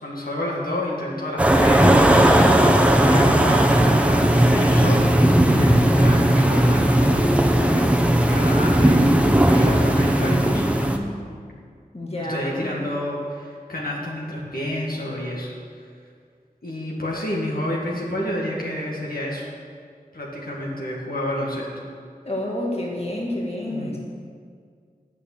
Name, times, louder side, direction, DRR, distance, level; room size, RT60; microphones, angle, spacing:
voice 1, 0.0-5.1 5.5-7.9 8.2-10.6 12.2-15.5 15.8-15.9 16.6-19.5 20.1-21.7 23.7-24.0, left 1 dB, 70° left, -4 dB, 1.9 m, -29 dB
sound 1, 1.4-11.0, right 1 dB, 10° right, 1.0 m, -17 dB
voice 2, 10.4-11.2 11.9-12.8 22.3-24.0, left 1 dB, 40° left, -3 dB, 1.8 m, -30 dB
8.8 x 7.0 x 7.2 m, 2.1 s
wide cardioid pair, 40°, 16 cm